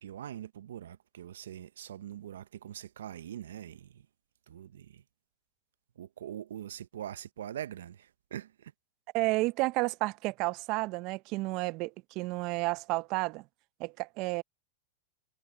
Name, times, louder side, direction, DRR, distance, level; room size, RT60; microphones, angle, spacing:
voice 1, 0.0-4.1 4.5-5.0 6.0-8.7, right 10 dB, 80° right, 0.9 m, -43 dB
voice 2, 9.1-13.4 13.8-14.4, right 23 dB, 50° right, 0.7 m, -31 dB
hypercardioid pair, 110°, 0 cm